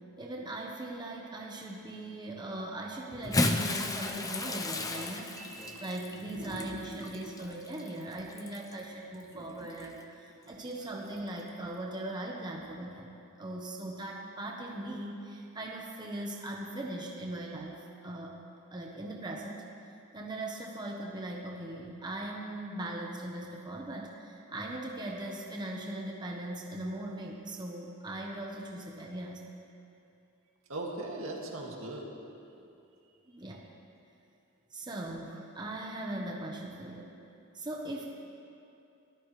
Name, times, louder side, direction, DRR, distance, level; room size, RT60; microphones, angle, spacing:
voice 1, 0.2-18.4 18.7-19.6 20.1-29.4 33.3-33.6 34.7-37.1 37.5-38.0, right 1 dB, 20° right, -1 dB, 1.1 m, -40 dB
Bathtub (filling or washing) / Splash splatter, 3.1-8.8 9.7-9.9 11.3-11.4, left 2 dB, 15° left, 0.7 m, -34 dB
voice 2, 5.4-6.0 6.3-7.3 9.3-9.7 10.5-10.6 30.7-32.1, right 2 dB, 75° right, -1 dB, 2.2 m, -41 dB
24.0 x 13.5 x 3.3 m, 2.6 s
head